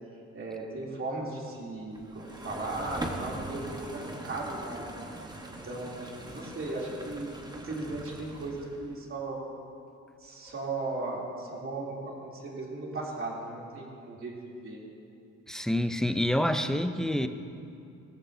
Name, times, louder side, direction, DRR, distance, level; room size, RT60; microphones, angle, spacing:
voice 1, 0.3-5.0 5.5-9.4 10.2-14.3 14.6-14.8, right 2 dB, 45° right, -4 dB, 3.2 m, -37 dB
sound 1, 1.9-8.9, right 1 dB, 15° right, 1.3 m, -41 dB
voice 2, 15.5-17.3, left 1 dB, ahead, 8 dB, 0.6 m, -27 dB
17.5 x 13.5 x 2.8 m, 2.5 s
cardioid pair, 90°, 30 cm